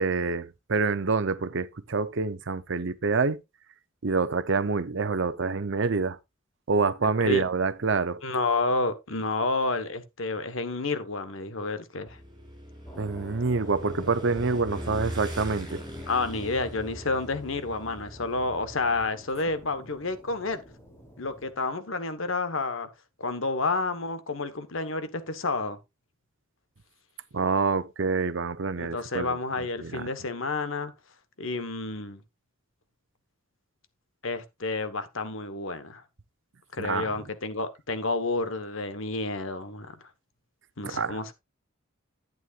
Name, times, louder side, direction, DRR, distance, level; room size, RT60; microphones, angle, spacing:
voice 1, 0.0-3.4 4.0-6.2 6.7-8.2 13.0-15.8 27.3-29.4 29.8-30.1 36.8-37.1 40.8-41.2, right 4 dB, 60° right, 0.7 m, -27 dB
voice 2, 7.0-7.4 8.2-12.2 16.1-20.6 21.2-22.9 23.2-25.8 28.8-30.9 31.4-32.2 34.2-36.0 36.7-39.9 40.8-41.3, left 3 dB, 70° left, 1.3 m, -30 dB
Motorcycle / Engine, 12.1-19.1, equal, 20° right, 7.0 m, -40 dB
sound 1, 12.9-21.5, equal, 15° left, 3.0 m, -49 dB
11.5 x 9.3 x 2.5 m
head